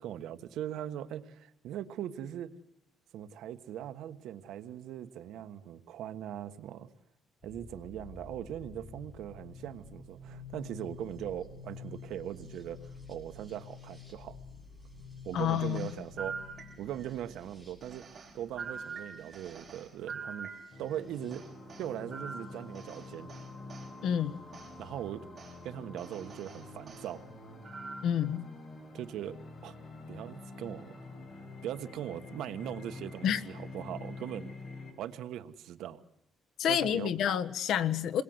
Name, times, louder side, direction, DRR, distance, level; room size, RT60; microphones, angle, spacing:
voice 1, 0.0-2.5 3.1-6.9 7.4-12.8 13.1-14.4 15.2-16.4 16.8-18.1 18.3-20.5 20.8-21.4 21.8-23.3 24.8-25.3 25.6-27.2 28.9-29.4 29.6-29.8 30.1-30.9 31.6-34.5 35.0-36.0 36.7-37.1, right 11 dB, 80° right, 10 dB, 1.4 m, -40 dB
sound 1, 7.4-23.1 24.3-24.9, left 5 dB, 15° left, 7.6 m, -51 dB
voice 2, 15.3-15.9 24.0-24.4 28.0-28.4 33.2-33.4 36.6-38.2, left 9 dB, 70° left, 12 dB, 1.3 m, -29 dB
sound 2, 15.4-17.1 17.8-21.0 21.3-23.9 24.5-24.7 25.4-25.6 26.0-27.1 27.6-28.2, right 5 dB, 30° right, 6.2 m, -45 dB
sound 3, 20.7-34.9, left 2 dB, 40° left, 5.6 m, -47 dB
28.0 x 22.0 x 8.0 m, 0.77 s
cardioid pair, 165°, 0 cm